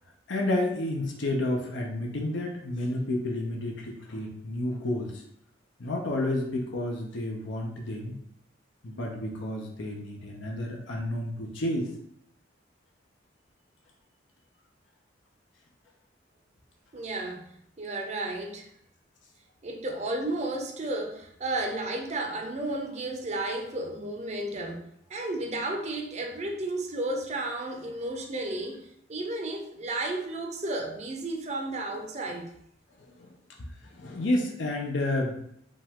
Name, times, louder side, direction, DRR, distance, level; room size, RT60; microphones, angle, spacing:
voice 1, 0.3-5.2 5.8-8.2 8.8-11.9 33.2-35.4, left 1 dB, 75° left, 0 dB, 0.7 m, -30 dB
voice 2, 16.9-17.5 17.8-18.7 19.6-24.8 25.1-32.5, right 2 dB, 35° right, 2 dB, 0.6 m, -33 dB
5.3 x 2.4 x 3.6 m, 0.72 s
head